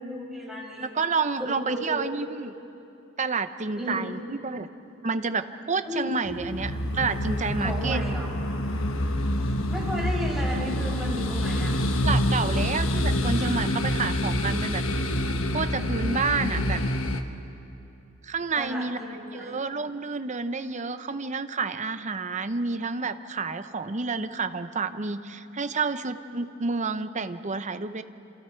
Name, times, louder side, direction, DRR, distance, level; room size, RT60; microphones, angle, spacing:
voice 1, 0.0-0.9 1.4-2.0 3.8-4.1 5.8-6.1 7.6-8.3 9.7-11.8 18.6-19.6, equal, ahead, -4 dB, 5.5 m, -33 dB
voice 2, 0.8-2.5 3.2-4.7 5.0-8.0 12.0-14.8 15.5-16.8 18.2-19.0 19.3-28.0, right 4 dB, 35° right, 10 dB, 0.8 m, -29 dB
Scattered Ghost, 6.2-17.2, left 1 dB, 85° left, 1.3 m, -27 dB
28.5 x 27.5 x 4.6 m, 2.8 s
head